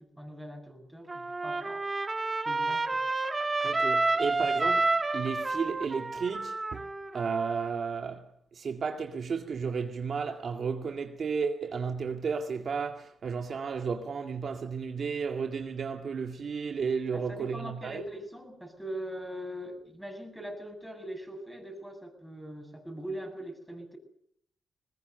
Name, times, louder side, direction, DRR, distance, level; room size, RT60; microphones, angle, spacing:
voice 1, 0.0-1.9 2.4-3.0 4.1-4.2 17.1-24.0, equal, ahead, 7.4 m, -41 dB
Trumpet, 1.1-7.7, right 3 dB, 25° right, 2.0 m, -30 dB
voice 2, 3.6-4.9 5.1-6.9 7.1-18.0, right 5 dB, 55° right, 2.1 m, -33 dB
21.0 x 21.0 x 6.8 m
cardioid pair, 90°, 0 cm